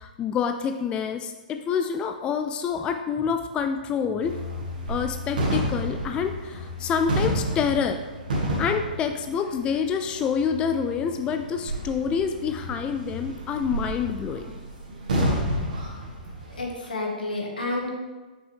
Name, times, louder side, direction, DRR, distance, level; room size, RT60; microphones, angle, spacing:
voice 1, 0.0-4.4 4.9-8.0 8.6-14.5, left 6 dB, 20° left, 7 dB, 0.3 m, -27 dB
sound 1, 4.2-16.6, equal, 65° right, 1.7 m, -30 dB
voice 2, 16.5-17.9, left 2 dB, 75° left, -1 dB, 1.7 m, -30 dB
6.4 x 6.0 x 3.4 m, 1.3 s
figure-of-eight pair, 115°, 5 cm